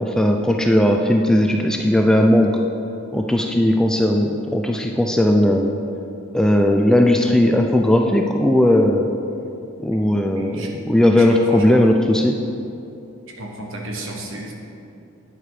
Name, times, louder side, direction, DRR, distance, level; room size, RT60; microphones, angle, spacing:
voice 1, 0.0-2.6 3.1-5.7 6.3-9.1 9.8-12.4, left 1 dB, 5° left, 2 dB, 0.4 m, -17 dB
voice 2, 10.3-10.7 11.1-11.9 13.4-14.5, right 1 dB, 60° right, 0 dB, 1.4 m, -32 dB
9.9 x 7.7 x 4.9 m, 2.7 s
head